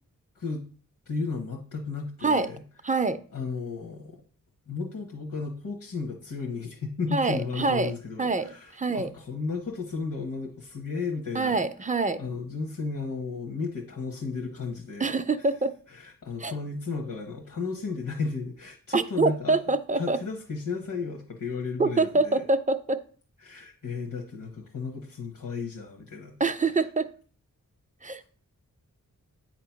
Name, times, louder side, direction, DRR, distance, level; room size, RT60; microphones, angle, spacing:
voice 1, 1.1-2.6 3.3-4.2 4.7-11.6 12.2-15.1 15.9-19.6 19.9-22.4 23.4-26.4, left 4 dB, 65° left, 1 dB, 1.2 m, -34 dB
voice 2, 2.8-3.2 7.1-7.9 8.2-9.1 11.3-12.2 15.0-15.7 16.4-16.5 18.9-20.2 21.8-23.0 26.4-27.1 28.0-28.2, right 3 dB, 25° right, 11 dB, 0.5 m, -25 dB
8.4 x 2.9 x 5.8 m, 0.41 s
wide cardioid pair, 95°, 33 cm